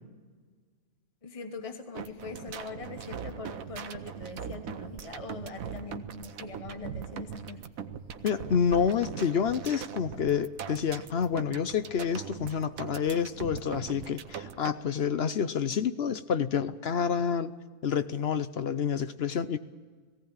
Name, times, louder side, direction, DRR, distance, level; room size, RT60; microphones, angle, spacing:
voice 1, 1.2-7.6, left 3 dB, 25° left, 7 dB, 1.0 m, -42 dB
sound 1, 1.9-14.7, right 7 dB, 65° right, 1.3 m, -41 dB
voice 2, 8.2-17.5 17.8-19.6, left 7 dB, 55° left, 12 dB, 0.8 m, -28 dB
18.5 x 16.5 x 8.8 m, 1.6 s
omnidirectional pair, 1.6 m